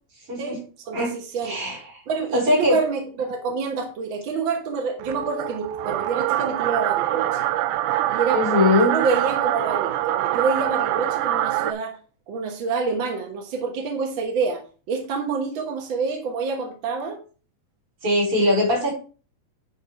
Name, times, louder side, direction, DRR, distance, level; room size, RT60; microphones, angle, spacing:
voice 1, 0.3-0.6 0.9-1.1 1.4-2.0 2.3-2.8 8.3-8.9 18.0-18.9, left 2 dB, 40° right, -2 dB, 4.8 m, -21 dB
voice 2, 0.9-1.6 2.1-7.5 8.1-8.4 8.8-12.0 12.3-14.6 14.9-17.2, right 4 dB, 60° right, 2 dB, 1.3 m, -27 dB
sound 1, 5.0-11.7, right 13 dB, 80° right, 1.9 m, -24 dB
9.7 x 3.7 x 4.6 m, 0.37 s
omnidirectional pair, 3.8 m